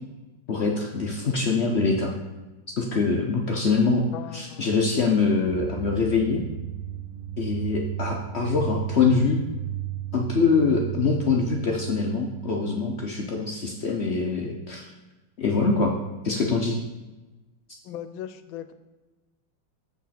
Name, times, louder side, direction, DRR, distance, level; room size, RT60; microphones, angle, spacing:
voice 1, 0.5-2.1 2.8-4.0 4.3-6.4 7.4-9.4 10.1-14.9 15.4-15.9 16.2-16.8, left 4 dB, 65° left, 1 dB, 0.6 m, -24 dB
voice 2, 4.1-4.7 17.8-18.7, left 10 dB, 85° left, 11 dB, 1.4 m, -38 dB
sound 1, 5.5-13.2, right 12 dB, 70° right, 0.9 m, -34 dB
7.1 x 6.2 x 4.2 m, 1.1 s
omnidirectional pair, 2.1 m